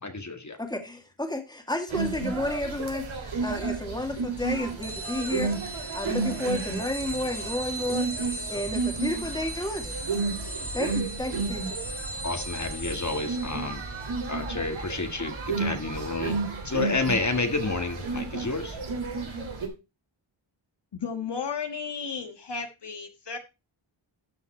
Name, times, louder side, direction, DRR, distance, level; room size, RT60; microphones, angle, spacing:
voice 1, 0.0-0.6 12.2-13.8 14.3-16.4 16.6-18.8, left 3 dB, 35° left, 6 dB, 1.8 m, -30 dB
voice 2, 0.6-10.0 10.7-11.8, left 1 dB, 10° left, 5 dB, 2.2 m, -32 dB
sound 1, 1.9-19.7, right 4 dB, 70° right, 3.2 m, -32 dB
sound 2, 4.8-16.9, right 2 dB, 30° right, 1.4 m, -39 dB
voice 3, 20.9-23.4, left 6 dB, 55° left, 6 dB, 1.6 m, -34 dB
12.5 x 5.8 x 4.2 m, 0.27 s
wide cardioid pair, 80°, 49 cm